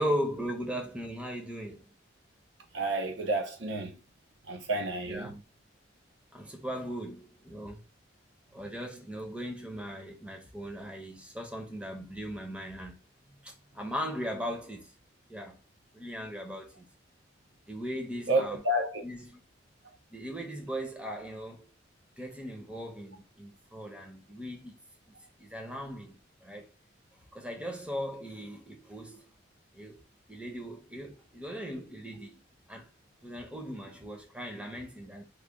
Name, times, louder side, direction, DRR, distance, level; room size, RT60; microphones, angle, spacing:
voice 1, 0.0-1.9 5.1-5.4 6.3-7.8 8.5-13.0 13.3-14.9 15.3-15.6 15.9-16.9 17.7-18.6 19.0-19.4 20.1-21.7 22.2-24.8 25.1-26.7 27.3-29.3 29.7-30.0 30.3-32.4 32.7-32.9 33.2-35.3, equal, 5° right, 0.8 m, -38 dB
voice 2, 2.7-4.0 4.5-5.4 18.3-19.0, right 1 dB, 75° right, 0.8 m, -30 dB
3.4 x 2.3 x 3.6 m
head